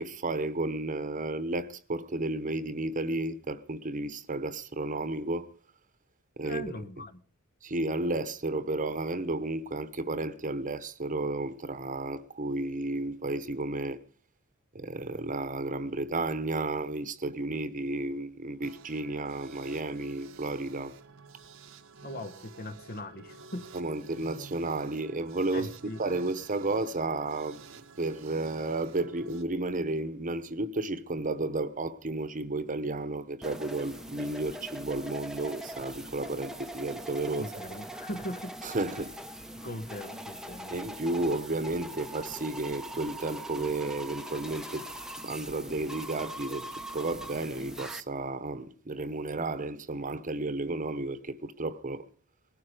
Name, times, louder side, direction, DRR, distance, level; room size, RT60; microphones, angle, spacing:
voice 1, 0.0-5.5 6.4-6.8 7.6-14.0 14.7-21.0 23.7-25.7 26.0-27.6 28.0-37.5 38.6-39.1 40.7-44.9 45.2-46.7 46.9-52.0, right 2 dB, 40° right, 1.1 m, -32 dB
voice 2, 6.4-7.2 22.0-23.7 25.5-26.0 37.4-38.6 39.6-40.8, left 1 dB, 45° left, 1.2 m, -40 dB
sound 1, 18.6-29.4, right 5 dB, 65° right, 1.0 m, -51 dB
sound 2, 33.4-48.0, right 1 dB, 5° right, 0.8 m, -42 dB
20.0 x 12.5 x 5.1 m
head